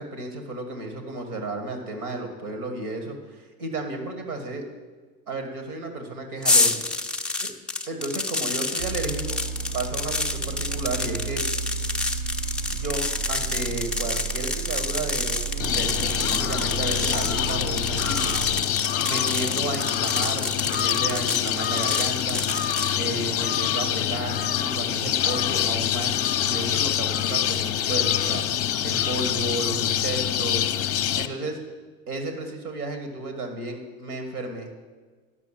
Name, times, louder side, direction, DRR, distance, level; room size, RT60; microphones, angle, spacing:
voice 1, 0.0-4.6 5.3-6.8 7.3-7.5 7.9-9.4 9.7-11.4 12.7-18.2 19.0-22.4 22.9-30.7 31.1-31.6 32.1-34.7, right 2 dB, 85° right, 5 dB, 1.8 m, -33 dB
sound 1, 6.4-22.9, left 2 dB, ahead, 0.3 m, -28 dB
sound 2, 8.8-18.6, right 6 dB, 60° right, 0.6 m, -33 dB
sound 3, 15.6-31.3, left 10 dB, 35° left, 0.6 m, -25 dB
10.5 x 6.2 x 7.3 m, 1.4 s
hypercardioid pair, 80°, 43 cm